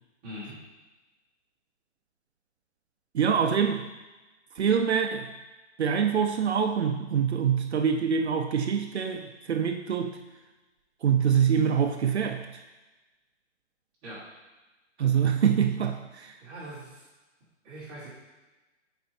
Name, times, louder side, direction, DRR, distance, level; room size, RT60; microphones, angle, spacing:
voice 1, 0.2-0.6 14.0-14.2 16.4-17.0 17.6-18.1, equal, 10° right, -11 dB, 1.3 m, -41 dB
voice 2, 3.1-3.9 4.6-5.3 5.8-10.2 11.0-12.6 15.0-16.4, right 7 dB, 60° right, 5 dB, 0.5 m, -25 dB
8.8 x 4.3 x 2.7 m, 1.1 s
hypercardioid pair, 175°, 37 cm